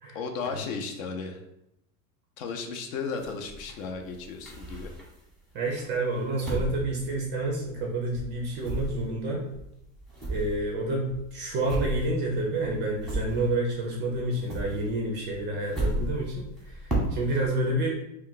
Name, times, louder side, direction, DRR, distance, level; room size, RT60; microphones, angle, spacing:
voice 1, 0.1-1.4 2.4-4.9, left 4 dB, 60° left, 4 dB, 0.6 m, -34 dB
sound 1, 3.2-5.3 5.8-13.8 14.1-17.5, right 1 dB, ahead, 0.8 m, -34 dB
voice 2, 5.5-9.4 10.3-18.0, right 2 dB, 25° right, -1 dB, 0.3 m, -29 dB
2.3 x 2.2 x 3.7 m, 0.83 s
hypercardioid pair, 115°, 46 cm